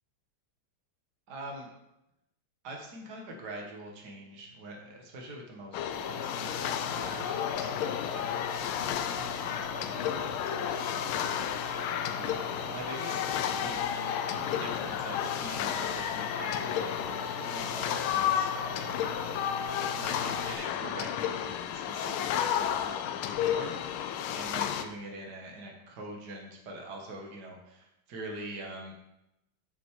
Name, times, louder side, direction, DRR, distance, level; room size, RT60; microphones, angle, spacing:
voice 1, 1.3-1.7 2.6-12.4 12.6-14.3 14.6-19.2 19.9-24.1 24.3-28.9, right 1 dB, 50° right, 0 dB, 2.0 m, -44 dB
sound 1, 5.7-24.9, left 9 dB, 75° left, 1.4 m, -32 dB
sound 2, 5.9-20.5, left 1 dB, 5° right, 3.1 m, -42 dB
8.0 x 6.4 x 4.9 m, 0.88 s
omnidirectional pair, 2.4 m